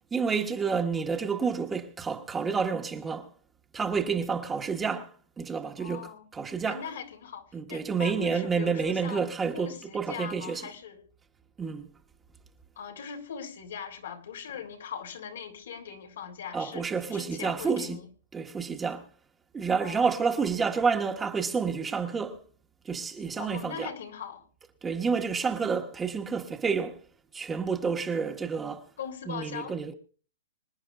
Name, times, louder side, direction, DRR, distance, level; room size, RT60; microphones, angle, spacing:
voice 1, 0.1-3.3 3.7-6.8 7.5-10.7 11.6-11.9 16.5-18.0 18.3-19.1 19.5-22.4 22.8-23.9 24.8-27.0 27.3-28.9 29.3-29.9, right 5 dB, 15° right, 1.4 m, -29 dB
voice 2, 5.8-6.3 6.6-11.0 12.8-18.0 19.8-20.1 23.4-24.5 29.0-29.7, left 7 dB, 80° left, 3.5 m, -40 dB
25.5 x 10.0 x 2.5 m
hypercardioid pair, 145°, 0 cm